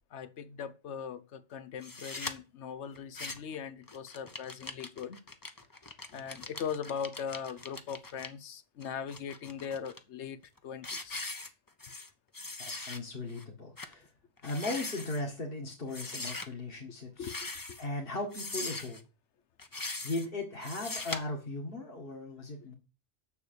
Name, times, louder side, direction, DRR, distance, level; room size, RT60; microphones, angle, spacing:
voice 1, 0.1-5.2 6.1-11.3 17.2-17.8, left 7 dB, 80° left, 1.1 m, -40 dB
sound 1, 1.8-2.3 3.0-3.6 3.9-8.3 8.8-10.0 10.4-10.6 10.8-12.1 12.3-13.0 13.4-13.5 13.8-13.9 14.4-15.2 15.9-16.5 17.2-17.9 18.3-19.0 19.6-20.3 20.6-21.2, left 3 dB, 20° left, 0.8 m, -41 dB
voice 2, 12.8-14.1 14.4-17.3 17.8-19.0 20.0-22.8, left 2 dB, 55° left, 2.1 m, -37 dB
7.0 x 6.7 x 6.8 m
omnidirectional pair, 1.1 m